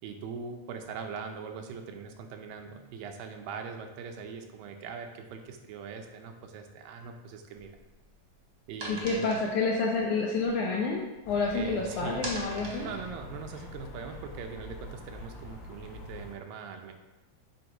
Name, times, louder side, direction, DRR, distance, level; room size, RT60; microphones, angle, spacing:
voice 1, 0.0-7.7 8.7-9.4 11.5-12.3 12.8-16.9, right 5 dB, 80° right, 5 dB, 2.3 m, -41 dB
sound 1, 7.5-11.5 11.9-14.6, right 1 dB, 50° right, 1.5 m, -43 dB
voice 2, 8.9-12.9, left 4 dB, 75° left, -1 dB, 1.8 m, -29 dB
sound 2, 11.2-16.3, left 1 dB, 40° left, 1.9 m, -45 dB
7.9 x 3.4 x 4.8 m, 1.0 s
omnidirectional pair, 4.1 m